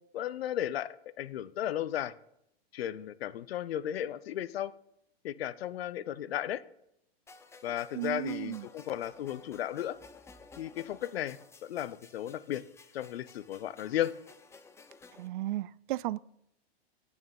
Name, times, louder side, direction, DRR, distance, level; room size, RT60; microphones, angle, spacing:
voice 1, 0.1-0.9 1.2-2.1 2.7-4.7 5.2-6.6 7.6-10.0 10.6-12.6 12.9-14.1, left 11 dB, 70° left, 0.8 m, -35 dB
sound 1, 7.3-15.3, left 4 dB, 10° left, 0.6 m, -54 dB
voice 2, 7.9-8.7 15.2-16.2, right 16 dB, 55° right, 0.4 m, -34 dB
9.6 x 8.8 x 5.4 m
hypercardioid pair, 125°, 32 cm